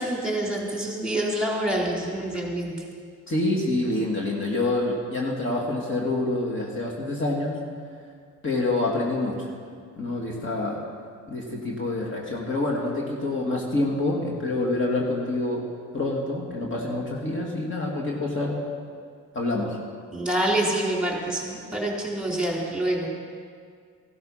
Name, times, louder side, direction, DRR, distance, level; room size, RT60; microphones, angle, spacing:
voice 1, 0.0-2.7 20.1-23.1, right 1 dB, 5° right, -2 dB, 3.7 m, -26 dB
voice 2, 3.3-7.6 8.4-9.5 10.0-10.8 11.3-15.7 15.9-18.6 19.3-19.8, left 2 dB, 40° left, -2 dB, 2.5 m, -27 dB
15.5 x 12.0 x 5.8 m, 2.1 s
cardioid pair, 90°, 30 cm